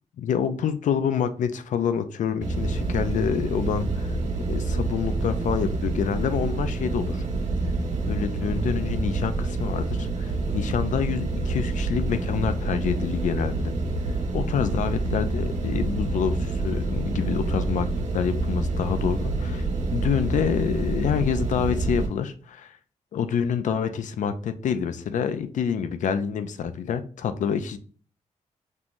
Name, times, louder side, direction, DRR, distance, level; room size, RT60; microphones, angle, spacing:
voice 1, 0.2-4.2 4.5-7.2 8.1-13.7 14.3-22.8 23.1-27.8, left 7 dB, 85° left, 0.4 m, -27 dB
sound 1, 2.4-22.1, right 2 dB, 85° right, 1.2 m, -27 dB
5.4 x 3.0 x 2.5 m
cardioid pair, 90°, 12 cm